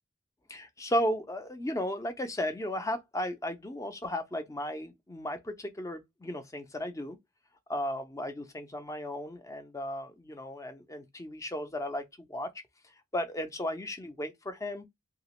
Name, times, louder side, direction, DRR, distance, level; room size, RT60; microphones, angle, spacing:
voice 1, 0.5-7.2 7.7-12.0 12.3-12.5 13.1-14.9, left 1 dB, 15° left, 0.4 m, -35 dB
2.8 x 2.4 x 2.9 m
head